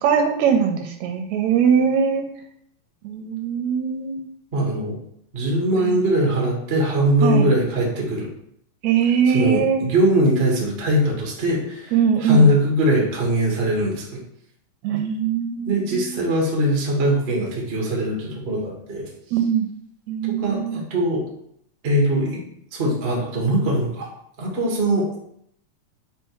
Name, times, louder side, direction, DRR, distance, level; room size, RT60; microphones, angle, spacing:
voice 1, 0.0-2.2 3.0-4.3 5.8-6.0 7.2-7.4 8.8-9.8 11.9-12.5 14.8-16.1 19.3-19.6 20.1-20.8, right 7 dB, 80° right, 5 dB, 1.8 m, -21 dB
voice 2, 4.5-5.0 5.3-8.3 9.3-14.2 15.7-19.1 20.3-21.2 21.8-22.4 22.7-24.1 24.4-25.2, equal, 40° right, -1 dB, 0.9 m, -21 dB
4.5 x 4.4 x 4.6 m, 0.71 s
omnidirectional pair, 3.4 m